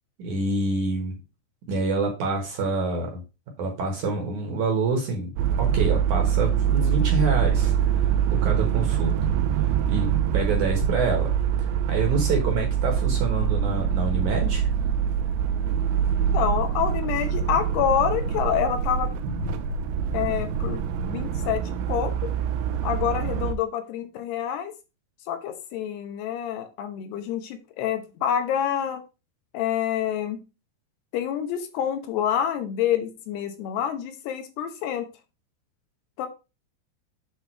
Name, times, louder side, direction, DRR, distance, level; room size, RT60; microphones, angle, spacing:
voice 1, 0.2-1.2 1.7-3.1 3.6-5.3 5.6-9.1 9.5-11.3 11.9-14.7 19.4-19.5, right 3 dB, 60° right, 2 dB, 2.2 m, -27 dB
sound 1, 5.4-23.5, right 8 dB, 85° right, 2.3 m, -24 dB
voice 2, 16.3-19.1 20.1-22.3 22.8-24.7 25.3-29.0 29.5-30.4 31.1-35.1 36.2-36.3, left 9 dB, 75° left, 7 dB, 2.8 m, -27 dB
8.1 x 3.6 x 4.5 m, 0.28 s
omnidirectional pair, 5.0 m